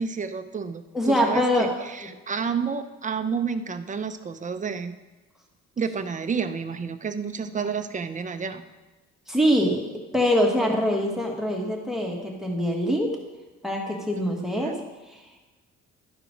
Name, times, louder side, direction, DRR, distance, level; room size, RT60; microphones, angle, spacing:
voice 1, 0.0-5.0 5.8-8.6 14.4-14.7, right 6 dB, 25° right, 9 dB, 0.6 m, -30 dB
voice 2, 0.9-1.7 9.3-9.8 10.1-13.1 13.6-14.7, equal, ahead, 0 dB, 1.6 m, -23 dB
12.0 x 4.7 x 5.2 m, 1.1 s
cardioid pair, 90°, 30 cm